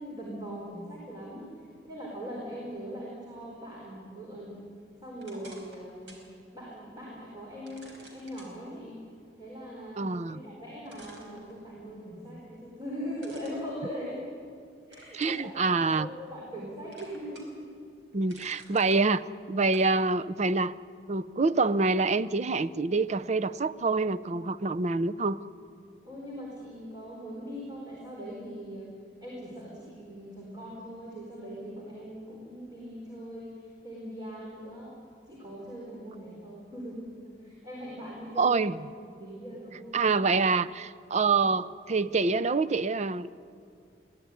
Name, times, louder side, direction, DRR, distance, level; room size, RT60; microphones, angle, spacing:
voice 1, 0.0-4.6 5.0-6.2 6.5-9.0 9.4-14.2 14.9-17.7 26.0-28.9 29.2-34.9 35.3-38.7 39.0-40.2, equal, 25° right, -4 dB, 4.5 m, -41 dB
sound 1, 5.2-6.3 6.7-6.8 7.7-8.5 10.3-10.4 10.9-11.9 13.2-14.5 14.9-15.4 15.9-16.6 16.9-17.6 18.0-19.0 19.7-19.9, right 2 dB, 90° right, 4.9 m, -52 dB
voice 2, 10.0-10.4 15.1-16.1 18.1-19.2 19.5-20.7 21.1-25.4 38.4-38.9 39.9-43.3, right 4 dB, 40° right, 13 dB, 0.6 m, -26 dB
23.0 x 16.0 x 9.8 m, 2.3 s
head